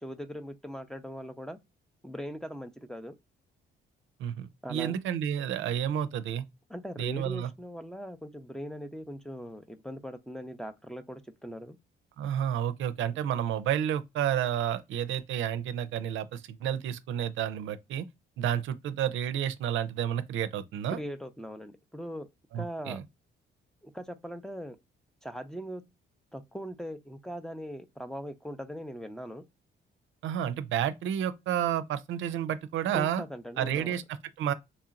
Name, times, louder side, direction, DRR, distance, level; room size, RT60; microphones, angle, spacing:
voice 1, 0.0-1.6 2.0-3.1 4.6-5.0 6.7-11.8 20.9-22.3 22.5-23.0 23.8-24.8 25.2-25.8 26.3-29.4 32.9-33.9, equal, 5° left, 0.5 m, -40 dB
voice 2, 4.2-6.5 7.0-7.5 12.2-18.0 18.4-21.0 22.5-23.0 30.2-33.2 33.6-34.0 34.4-34.5, right 10 dB, 75° right, 0.5 m, -30 dB
4.1 x 2.8 x 2.4 m
cardioid pair, 90°, 20 cm